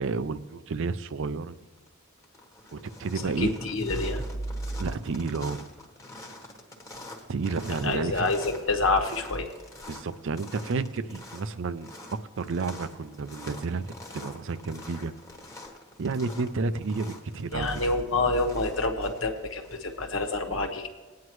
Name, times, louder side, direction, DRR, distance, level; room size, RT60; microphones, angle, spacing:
voice 1, 0.0-1.6 2.7-3.5 4.8-5.7 7.3-8.3 9.9-15.1 16.0-17.7, right 4 dB, 60° right, 13 dB, 0.5 m, -31 dB
sound 1, 1.5-1.9 2.2-20.1, left 1 dB, 15° left, 1.2 m, -46 dB
voice 2, 3.4-4.2 7.8-9.4 17.5-20.9, left 3 dB, 70° left, 5 dB, 1.2 m, -27 dB
20.0 x 9.4 x 3.1 m, 1.3 s
head